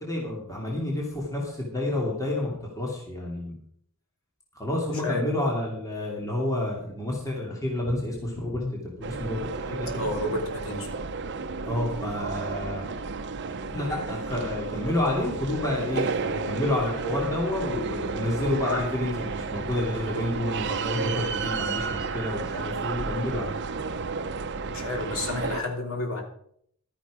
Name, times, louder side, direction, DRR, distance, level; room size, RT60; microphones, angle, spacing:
voice 1, 0.0-3.6 4.6-10.1 11.6-12.8 13.7-23.5, left 1 dB, 15° left, -2 dB, 2.7 m, -29 dB
voice 2, 4.9-5.3 7.8-7.9 8.6-8.8 10.0-10.9 24.7-26.2, left 2 dB, 65° left, 1 dB, 3.0 m, -31 dB
sound 1, 9.0-25.6, right 4 dB, 50° right, 0.8 m, -32 dB
12.5 x 10.5 x 5.0 m, 0.66 s
head